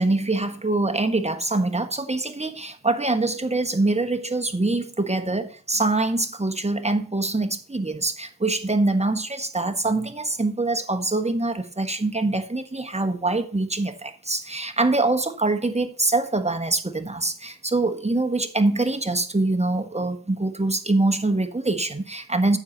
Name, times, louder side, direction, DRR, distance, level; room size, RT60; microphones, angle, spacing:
voice 1, 0.0-22.6, right 2 dB, 20° right, 1.3 m, -24 dB
9.6 x 7.3 x 4.0 m
wide cardioid pair, 60°, 36 cm